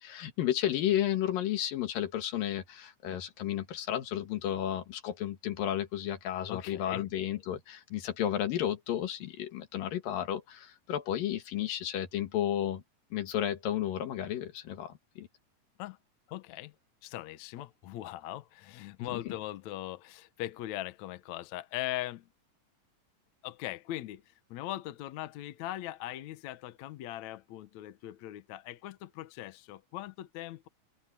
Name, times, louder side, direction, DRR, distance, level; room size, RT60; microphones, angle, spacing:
voice 1, 0.0-12.8 13.1-15.3 19.0-19.2, left 11 dB, 80° left, 3.3 m, -32 dB
voice 2, 6.5-7.0 15.8-16.0 16.3-16.7 17.0-22.3 23.4-30.7, left 15 dB, 65° left, 2.0 m, -40 dB
open air
omnidirectional pair, 3.9 m